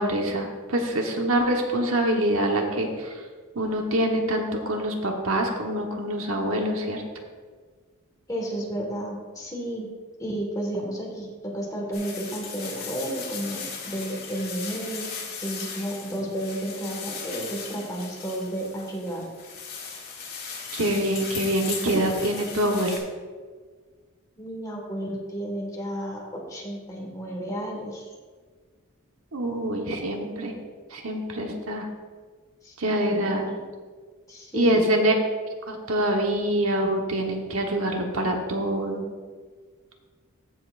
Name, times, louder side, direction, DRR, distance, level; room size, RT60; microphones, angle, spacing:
voice 1, 0.0-3.2 3.5-7.0 20.7-23.0 29.3-30.5 30.9-31.9 32.8-33.5 34.5-35.2 35.7-39.1, right 1 dB, 75° right, 2 dB, 1.2 m, -25 dB
voice 2, 8.3-9.9 10.2-15.1 15.4-19.3 24.4-28.1 32.6-33.6 34.3-35.0, right 1 dB, 15° left, -1 dB, 1.7 m, -32 dB
sound 1, 11.9-23.0, left 5 dB, 45° left, 2.4 m, -37 dB
15.0 x 6.9 x 2.6 m, 1.5 s
head